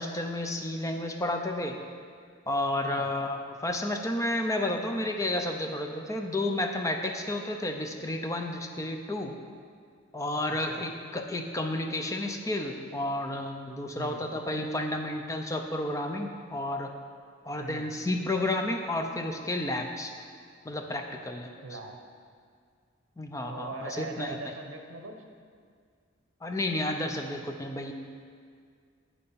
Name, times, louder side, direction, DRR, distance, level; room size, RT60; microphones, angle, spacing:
voice 1, 0.0-1.8 2.5-9.3 10.1-16.9 17.5-20.1 20.7-21.5 23.2-24.4 26.4-27.9, left 1 dB, 15° left, 4 dB, 0.5 m, -31 dB
voice 2, 10.5-10.8 14.0-14.2 17.6-17.9 21.6-21.9 23.5-25.2, right 2 dB, 65° right, 3 dB, 0.9 m, -40 dB
8.7 x 6.7 x 5.5 m, 2.1 s
head